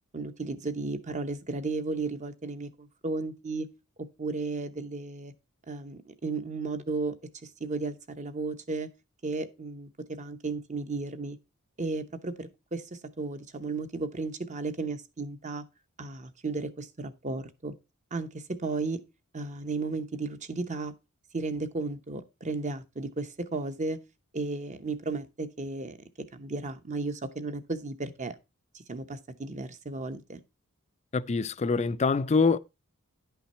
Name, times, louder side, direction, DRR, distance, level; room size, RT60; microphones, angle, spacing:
voice 1, 0.1-3.7 4.2-5.3 5.7-7.1 7.4-8.9 9.2-11.4 11.8-15.6 16.0-17.7 18.1-19.0 19.3-20.9 21.3-24.0 24.3-28.4 28.7-30.4, right 3 dB, 35° right, 0.9 m, -34 dB
voice 2, 31.1-32.6, left 4 dB, 30° left, 0.4 m, -25 dB
10.5 x 5.8 x 4.3 m
head